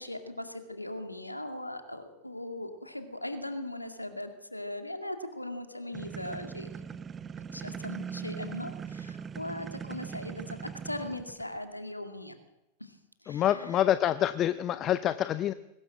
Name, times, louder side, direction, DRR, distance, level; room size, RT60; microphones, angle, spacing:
voice 1, 0.0-6.9 7.5-12.3 12.8-13.8, left 1 dB, 85° left, 8 dB, 2.2 m, -39 dB
sound 1, 5.9-11.6, right 7 dB, 20° right, 0.7 m, -40 dB
voice 2, 13.3-15.5, left 11 dB, 30° left, 14 dB, 0.7 m, -27 dB
21.5 x 19.5 x 7.6 m, 0.91 s
figure-of-eight pair, 90°, 0 cm